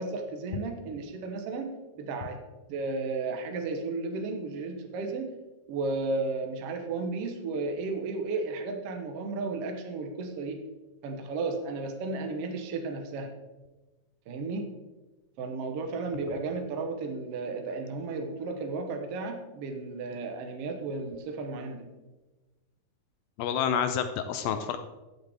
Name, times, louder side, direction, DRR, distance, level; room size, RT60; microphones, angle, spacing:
voice 1, 0.0-2.4 2.7-5.3 5.7-10.6 11.0-13.3 14.3-14.7 15.4-21.9 24.4-24.6, right 3 dB, 75° right, 4 dB, 1.3 m, -34 dB
voice 2, 23.4-24.8, left 8 dB, 80° left, 8 dB, 2.1 m, -28 dB
14.0 x 8.1 x 3.5 m, 1.1 s
omnidirectional pair, 4.3 m